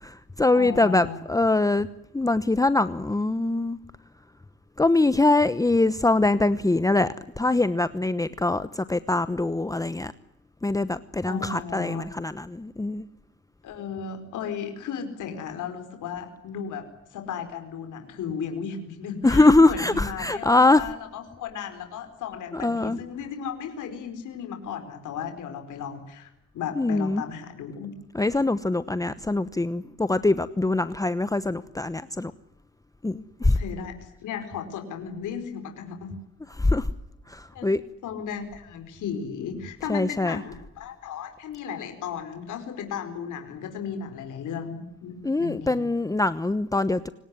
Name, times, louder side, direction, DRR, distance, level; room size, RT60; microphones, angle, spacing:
voice 1, 0.0-1.9 2.1-3.8 4.8-10.1 10.6-13.1 19.2-20.8 22.5-23.0 26.8-27.2 28.1-32.3 33.0-33.6 36.6-36.9 37.3-37.8 39.9-40.4 45.2-47.1, left 2 dB, 10° left, 13 dB, 1.0 m, -23 dB
voice 2, 0.5-1.2 11.2-12.1 13.6-16.8 17.1-27.9 29.1-29.3 33.4-36.2 37.5-37.7 38.0-45.8, left 7 dB, 80° left, 6 dB, 4.7 m, -35 dB
29.0 x 18.5 x 9.7 m, 0.85 s
cardioid pair, 90°, 30 cm